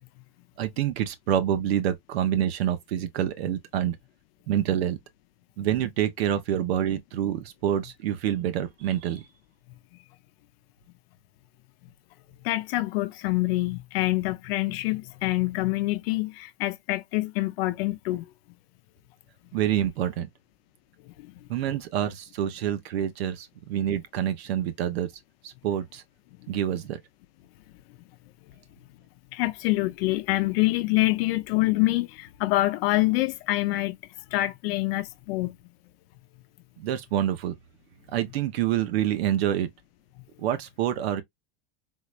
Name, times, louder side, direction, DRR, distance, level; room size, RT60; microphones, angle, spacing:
voice 1, 0.6-4.0 4.5-5.0 5.6-9.2 19.5-20.3 21.5-25.1 25.4-26.0 26.5-27.0 36.8-37.6 38.1-39.7 40.4-41.2, right 10 dB, 90° right, 0.9 m, -27 dB
voice 2, 12.4-18.3 21.2-21.3 29.3-34.0 34.3-35.6, left 19 dB, 75° left, 0.6 m, -26 dB
3.9 x 3.1 x 2.4 m
supercardioid pair, 125°, 30 cm